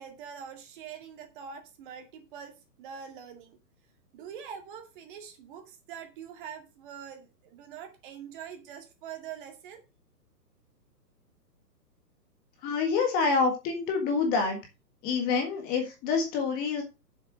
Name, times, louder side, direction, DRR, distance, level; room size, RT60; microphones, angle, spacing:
voice 1, 0.0-3.6 4.1-9.8, right 8 dB, 30° right, 5 dB, 2.3 m, -44 dB
voice 2, 12.6-14.6 15.0-16.8, left 4 dB, 20° left, 4 dB, 1.6 m, -27 dB
7.9 x 7.1 x 6.3 m, 0.29 s
hypercardioid pair, 155°, 50 cm